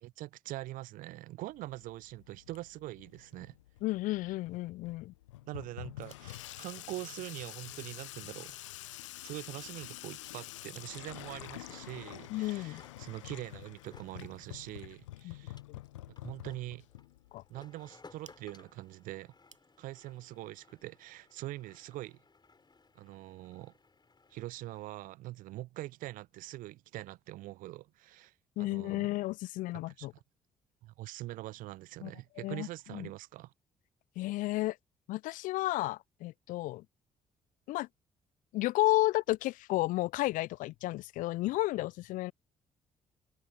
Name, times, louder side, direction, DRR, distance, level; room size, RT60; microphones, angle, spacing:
voice 1, 0.0-3.6 5.5-8.6 8.9-15.6 16.2-16.9 17.5-19.3 19.8-22.2 22.9-23.7 24.3-28.3 28.6-29.1 29.7-30.1 30.8-33.5, right 17 dB, 60° right, 0.5 m, -44 dB
Water tap faucet / Sink (filling or washing), 1.5-17.5, left 16 dB, 80° left, 0.8 m, -48 dB
voice 2, 3.8-5.1 12.3-12.8 15.2-15.3 17.3-17.4 28.6-30.1 32.0-32.1 32.4-33.1 34.2-34.8 35.1-36.8 37.7-37.9 38.5-42.3, left 18 dB, 60° left, 0.4 m, -32 dB
sound 1, 5.7-20.1, right 5 dB, 90° right, 5.3 m, -68 dB
sound 2, 9.2-25.0, left 4 dB, 30° left, 5.0 m, -62 dB
figure-of-eight pair, 45°, 16 cm